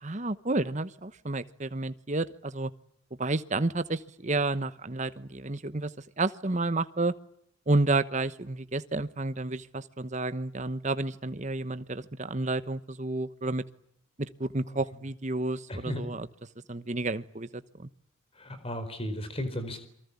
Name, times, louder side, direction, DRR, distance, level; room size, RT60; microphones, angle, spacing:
voice 1, 0.0-2.7 3.2-5.9 6.2-7.1 7.7-13.6 14.2-16.3 16.7-17.9, right 2 dB, 35° right, 13 dB, 1.1 m, -30 dB
voice 2, 15.7-16.0 18.4-19.8, equal, 30° left, 10 dB, 4.4 m, -35 dB
29.0 x 24.0 x 8.4 m, 0.69 s
head